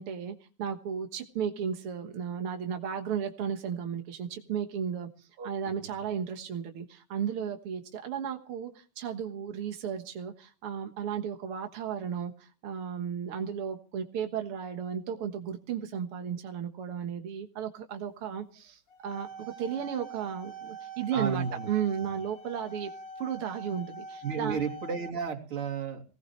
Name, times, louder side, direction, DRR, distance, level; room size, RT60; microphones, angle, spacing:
voice 1, 0.0-22.9 23.2-24.6, right 8 dB, 60° right, 5 dB, 1.5 m, -34 dB
sound 1, 18.9-25.1, right 2 dB, 40° left, 3.1 m, -44 dB
voice 2, 21.1-21.7 24.2-26.0, right 6 dB, 40° right, 1 dB, 3.6 m, -32 dB
20.5 x 20.0 x 3.2 m, 0.37 s
omnidirectional pair, 4.3 m